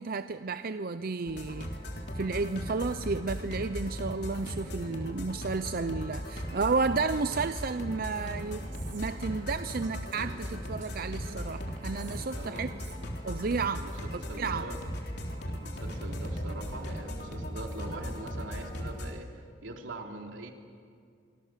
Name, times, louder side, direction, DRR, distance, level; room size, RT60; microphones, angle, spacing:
voice 1, 0.0-1.7 2.2-8.7 8.9-12.7 13.2-13.9 14.1-14.7, right 4 dB, 50° right, 11 dB, 0.6 m, -32 dB
sound 1, 1.3-19.1, equal, 60° left, 3.5 m, -38 dB
sound 2, 8.0-16.8, equal, 15° left, 2.5 m, -56 dB
Female speech woman speaking, 8.1-13.4, right 2 dB, 70° right, 3.4 m, -51 dB
voice 2, 12.3-12.8 13.7-13.9 14.3-14.8 15.4-20.5, right 2 dB, 90° right, 2 dB, 3.1 m, -42 dB
27.0 x 25.5 x 7.5 m, 2.3 s
head